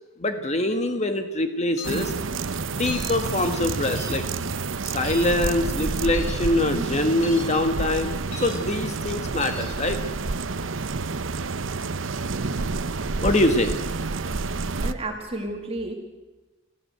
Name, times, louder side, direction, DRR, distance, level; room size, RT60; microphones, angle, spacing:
voice 1, 0.2-2.1 2.7-4.2 4.8-10.0 13.2-13.7, left 1 dB, 35° left, 7 dB, 1.5 m, -24 dB
sound 1, 1.8-2.0 2.9-3.1 3.9-4.2 5.0-5.3 6.1-6.3 7.2-7.4 8.3-8.6 9.4-9.6, left 4 dB, 80° left, 4.9 m, -38 dB
sound 2, 1.8-14.9, right 3 dB, 70° right, 0.8 m, -29 dB
voice 2, 14.8-15.9, right 2 dB, 30° right, 3 dB, 2.2 m, -31 dB
30.0 x 14.5 x 7.9 m, 1.2 s
head